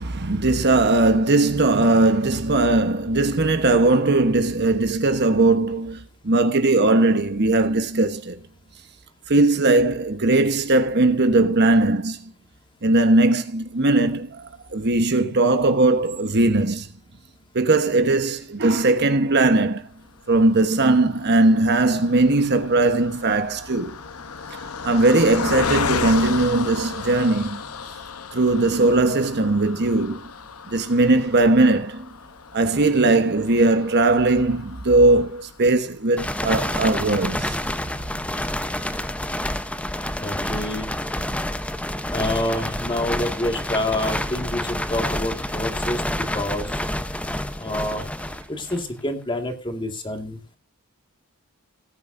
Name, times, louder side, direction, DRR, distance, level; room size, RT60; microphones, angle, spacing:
voice 1, 0.0-8.4 9.3-12.3 12.8-16.9 17.5-19.9 20.3-24.0 24.8-27.6 28.3-30.3 30.7-32.1 32.5-37.6, right 2 dB, 50° right, 1.1 m, -19 dB
Car passing by, 20.3-35.8 36.3-36.4 36.7-36.9, left 5 dB, 75° left, 1.0 m, -33 dB
sound 1, 36.2-49.0, left 1 dB, 5° left, 0.8 m, -28 dB
voice 2, 40.2-40.9 42.1-44.6 44.9-46.0 46.3-46.7 47.6-48.0 48.5-50.4, left 1 dB, 20° left, 2.0 m, -27 dB
18.0 x 9.5 x 2.6 m
head